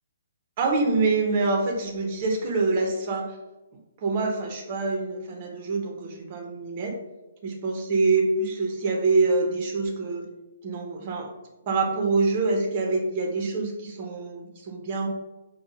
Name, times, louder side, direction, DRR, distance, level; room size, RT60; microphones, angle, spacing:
voice 1, 0.6-3.4 4.0-6.9 7.4-10.3 10.6-11.3 11.7-15.1, right 3 dB, 40° right, 2 dB, 0.8 m, -25 dB
5.4 x 2.2 x 2.7 m, 1.0 s
hypercardioid pair, 150°, 0 cm